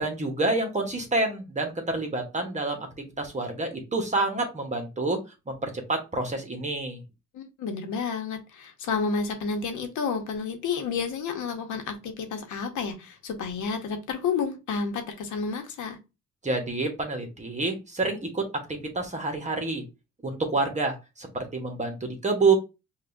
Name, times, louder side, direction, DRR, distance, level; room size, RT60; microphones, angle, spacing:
voice 1, 0.0-2.9 3.2-5.2 5.5-7.0 16.4-18.4 18.7-19.8 20.2-22.6, right 3 dB, 25° right, 1.1 m, -28 dB
voice 2, 7.3-16.0, left 5 dB, 75° left, 1.0 m, -30 dB
5.2 x 2.4 x 2.6 m
cardioid pair, 90°, 30 cm